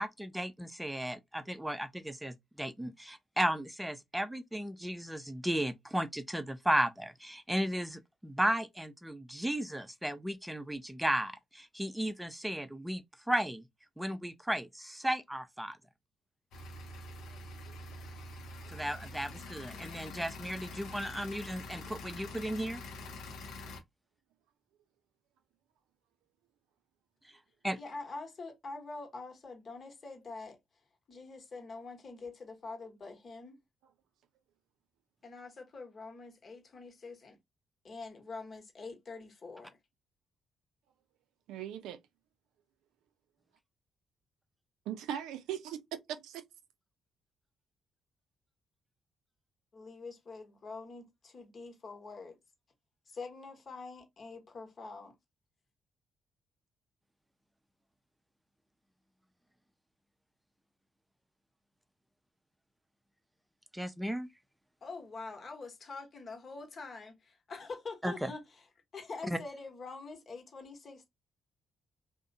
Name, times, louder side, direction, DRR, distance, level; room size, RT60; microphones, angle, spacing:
voice 1, 0.0-13.6 14.0-15.8 18.7-22.8 27.6-27.8 63.7-64.3 68.0-68.3 69.3-69.4, right 1 dB, 5° right, 0.6 m, -34 dB
sound 1, 16.5-23.8, left 2 dB, 70° left, 0.6 m, -45 dB
voice 2, 27.8-30.6 31.1-33.6 35.2-37.4 37.8-39.8 49.7-52.4 53.1-55.1 64.8-68.7 68.9-71.1, left 3 dB, 45° left, 1.0 m, -45 dB
voice 3, 41.5-42.0 44.9-46.4, right 10 dB, 75° right, 0.4 m, -39 dB
2.6 x 2.1 x 2.6 m
hypercardioid pair, 45°, 0 cm